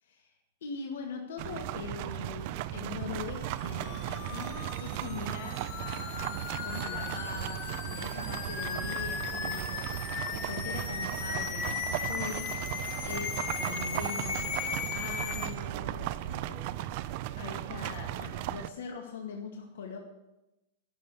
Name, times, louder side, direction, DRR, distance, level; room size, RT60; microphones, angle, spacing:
voice 1, 0.0-0.3 0.6-6.2 6.6-9.9 10.3-12.5 13.0-14.4 14.9-17.0 17.3-20.0, left 5 dB, 85° left, 1 dB, 2.0 m, -42 dB
sound 1, 1.4-18.7, right 14 dB, 35° right, 0.4 m, -36 dB
sound 2, 3.2-15.5, left 7 dB, 35° left, 1.3 m, -37 dB
12.0 x 6.6 x 8.4 m, 0.96 s
supercardioid pair, 175°, 0 cm